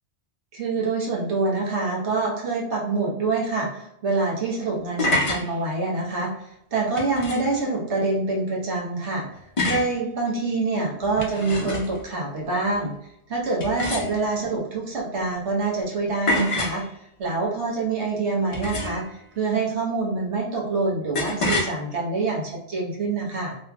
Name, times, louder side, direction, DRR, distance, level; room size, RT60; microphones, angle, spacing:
voice 1, 0.5-9.3 9.7-12.9 13.3-16.8 17.2-19.0 19.4-23.6, right 3 dB, 80° right, -3 dB, 1.2 m, -26 dB
sound 1, 4.8-5.5 7.0-7.6 9.6-10.0 11.0-12.0 13.6-14.4 16.3-16.8 18.5-19.1 21.1-21.7, left 2 dB, 45° left, 0.4 m, -26 dB
2.8 x 2.6 x 2.2 m, 0.78 s
omnidirectional pair, 1.2 m